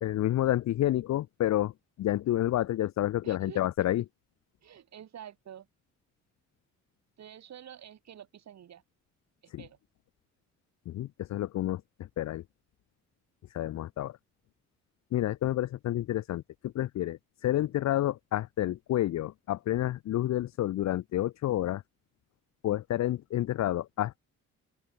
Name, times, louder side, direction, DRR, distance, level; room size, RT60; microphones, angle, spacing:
voice 1, 0.0-1.7 2.0-4.0 9.5-9.6 10.9-12.4 13.5-14.2 15.1-21.8 22.6-24.2, left 13 dB, 65° left, 0.7 m, -29 dB
voice 2, 3.2-3.6 4.6-5.7 7.2-8.8 9.4-9.8, right 10 dB, 60° right, 3.9 m, -48 dB
open air
cardioid pair, 90°, 30 cm